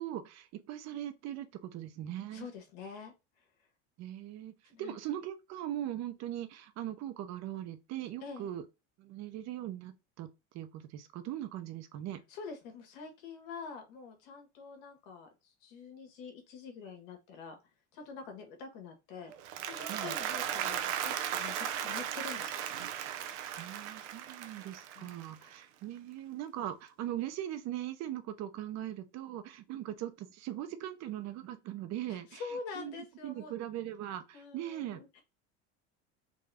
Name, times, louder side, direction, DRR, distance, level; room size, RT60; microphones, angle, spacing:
voice 1, 0.0-2.5 4.0-4.5 4.8-8.6 9.0-10.3 10.5-12.2 19.9-20.2 23.6-32.4 32.8-35.0, right 12 dB, 50° right, 0.8 m, -40 dB
voice 2, 2.3-3.1 4.7-5.0 8.2-8.5 12.3-17.6 17.9-19.3 19.7-22.8 24.9-25.1 25.4-25.5 32.1-33.5 34.3-35.2, left 5 dB, 75° left, 1.6 m, -46 dB
Applause, 19.3-25.6, right 10 dB, 90° right, 0.7 m, -37 dB
3.8 x 2.6 x 3.4 m
supercardioid pair, 120°, 34 cm